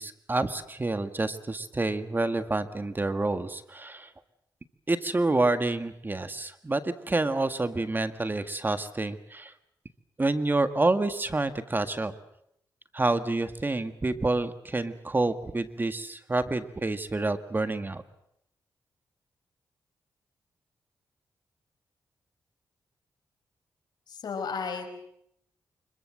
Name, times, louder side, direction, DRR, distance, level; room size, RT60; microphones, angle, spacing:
voice 1, 0.0-4.1 4.9-9.5 10.2-12.1 12.9-18.0, right 2 dB, 30° right, 10 dB, 1.8 m, -28 dB
voice 2, 24.1-25.0, left 5 dB, 75° left, 6 dB, 4.9 m, -34 dB
25.0 x 22.5 x 7.7 m, 0.75 s
cardioid pair, 60°, 7 cm